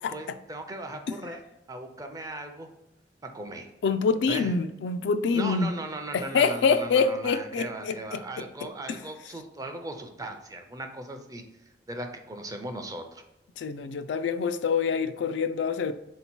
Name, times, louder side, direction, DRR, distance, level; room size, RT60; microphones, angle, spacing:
voice 1, 0.1-1.4 1.7-2.7 3.2-3.7 4.3-4.5 5.3-11.4 11.9-13.2, right 2 dB, 20° right, 5 dB, 0.5 m, -38 dB
voice 2, 3.8-5.7 6.1-8.2 13.6-15.9, left 5 dB, 80° left, 10 dB, 0.3 m, -26 dB
3.8 x 2.8 x 4.4 m, 0.91 s
head